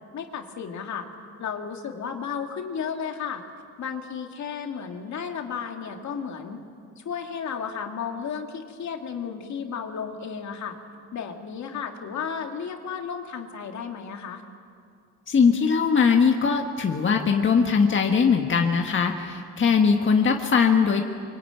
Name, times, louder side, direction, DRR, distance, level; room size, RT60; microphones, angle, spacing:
voice 1, 0.1-1.1 1.4-3.4 3.8-6.6 7.0-10.8 11.1-14.4, left 7 dB, 65° left, 3 dB, 2.6 m, -33 dB
voice 2, 15.3-21.0, left 5 dB, 40° left, 3 dB, 1.6 m, -20 dB
24.0 x 23.5 x 9.1 m, 2.4 s
cardioid pair, 90°, 30 cm